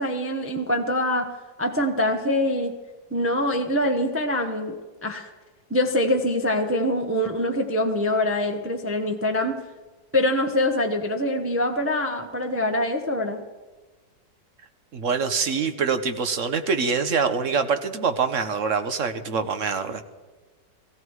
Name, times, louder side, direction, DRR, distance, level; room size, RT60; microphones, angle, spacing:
voice 1, 0.0-1.3 1.6-2.7 3.1-5.3 5.7-9.6 10.1-13.4, left 1 dB, 10° right, 5 dB, 0.7 m, -24 dB
voice 2, 14.9-20.0, right 5 dB, 50° right, 9 dB, 1.1 m, -25 dB
16.5 x 16.0 x 4.8 m, 1.3 s
omnidirectional pair, 1.9 m